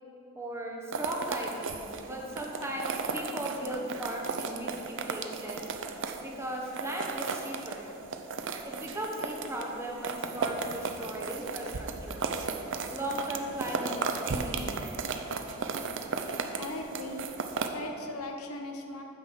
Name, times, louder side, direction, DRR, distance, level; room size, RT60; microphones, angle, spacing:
voice 1, 0.3-5.6 6.2-7.9 8.6-12.2 12.9-15.0, right 1 dB, 10° right, -1 dB, 1.2 m, -37 dB
sound 1, 0.9-17.7, right 4 dB, 60° right, 0.7 m, -35 dB
voice 2, 16.6-17.3 17.7-19.0, left 2 dB, 75° left, 3 dB, 1.0 m, -38 dB
9.0 x 6.2 x 7.5 m, 2.9 s
head